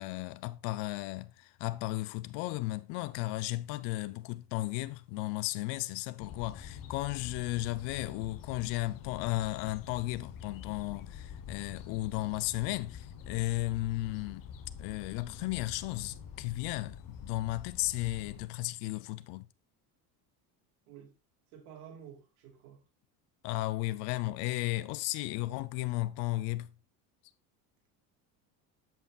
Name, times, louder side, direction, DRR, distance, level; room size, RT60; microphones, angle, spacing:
voice 1, 0.0-19.5 23.4-26.7, left 18 dB, 65° left, 0.7 m, -35 dB
sound 1, 6.2-18.5, left 7 dB, 50° left, 1.2 m, -46 dB
voice 2, 21.5-22.8, right 8 dB, 90° right, 2.6 m, -51 dB
8.0 x 7.3 x 2.4 m
supercardioid pair, 105°, 44 cm